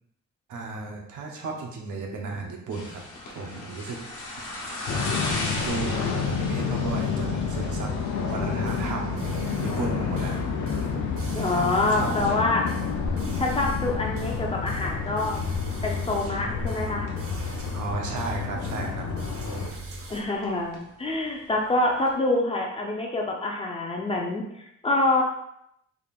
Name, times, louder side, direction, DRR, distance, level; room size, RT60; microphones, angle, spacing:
voice 1, 0.5-4.0 4.3-4.5 4.9-5.0 5.6-7.9 8.3-10.5 10.8-11.0 11.5-12.4 17.7-19.0 19.4-19.7, right 3 dB, 85° right, 0 dB, 0.8 m, -34 dB
sound 1, 2.7-22.1, left 1 dB, 90° left, 1.0 m, -39 dB
sound 2, 4.9-19.7, left 5 dB, 65° left, 0.6 m, -29 dB
sound 3, 5.4-20.2, right 2 dB, 50° right, 0.6 m, -40 dB
voice 2, 11.3-12.7 13.4-15.4 15.8-17.1 20.1-24.4 24.8-25.2, left 2 dB, 20° left, 0 dB, 0.4 m, -26 dB
3.7 x 2.4 x 3.4 m, 0.77 s
wide cardioid pair, 180°, 30 cm